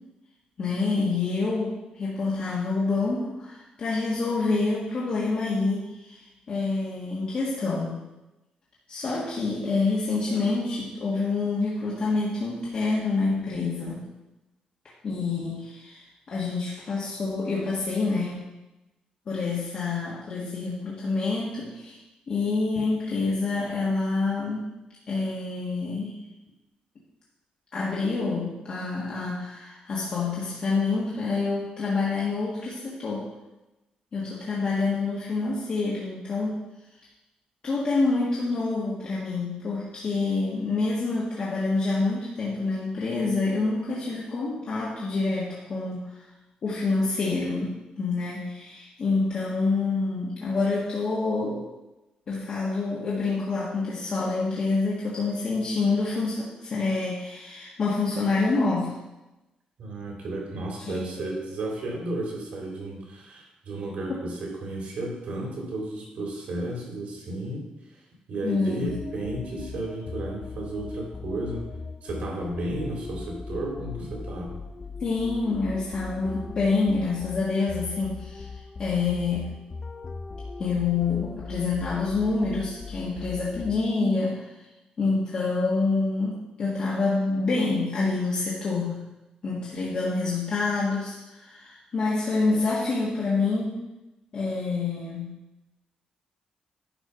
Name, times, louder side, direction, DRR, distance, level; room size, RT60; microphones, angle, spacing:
voice 1, 0.6-6.2 6.5-8.0 8.9-14.0 15.0-18.4 19.3-22.0 22.3-24.7 25.1-26.2 27.7-33.3 34.1-36.6 37.6-46.2 46.6-51.6 52.3-58.9 60.8-61.4 68.4-68.9 75.0-78.4 78.8-79.5 80.6-84.5 85.0-89.1 89.4-93.8 94.3-95.3, left 3 dB, 40° left, -6 dB, 1.6 m, -27 dB
voice 2, 59.8-67.7 68.3-71.7 72.0-74.6, right 2 dB, 60° right, -1 dB, 3.0 m, -33 dB
sound 1, 68.9-84.0, left 3 dB, 25° left, 0.4 m, -39 dB
11.0 x 4.7 x 5.6 m, 1.0 s
wide cardioid pair, 180°, 3 cm